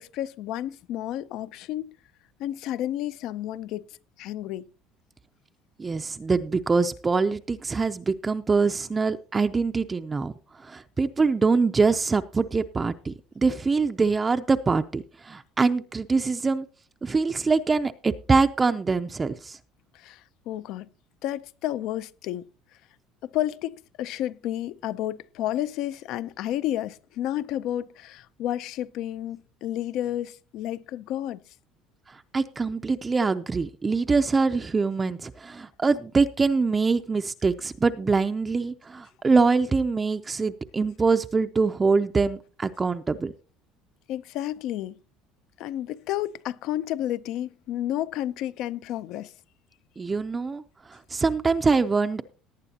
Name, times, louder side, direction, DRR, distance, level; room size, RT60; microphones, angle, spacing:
voice 1, 0.0-1.9 2.4-4.7 19.9-20.9 21.2-22.5 23.2-31.4 44.1-45.0 45.6-49.3, left 12 dB, 65° left, 0.5 m, -31 dB
voice 2, 5.8-10.3 10.6-16.7 17.0-19.6 32.1-43.3 50.0-50.6 50.9-52.2, right 4 dB, 20° right, 0.5 m, -24 dB
18.0 x 9.1 x 2.8 m
cardioid pair, 130°, 0 cm